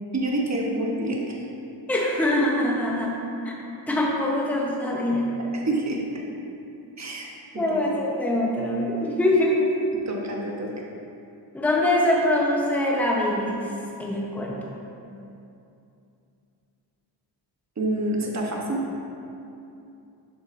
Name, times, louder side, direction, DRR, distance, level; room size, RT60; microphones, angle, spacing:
voice 1, 0.1-1.2 5.7-6.0 7.0-7.2 7.7-7.8 10.1-10.7 17.8-18.8, right 1 dB, 35° right, -1 dB, 1.0 m, -27 dB
voice 2, 1.9-3.2 3.4-3.5 3.9-5.3 7.6-9.9 11.5-14.6, left 1 dB, 5° left, -3 dB, 0.8 m, -23 dB
6.3 x 6.3 x 2.6 m, 2.7 s
cardioid pair, 70°, 46 cm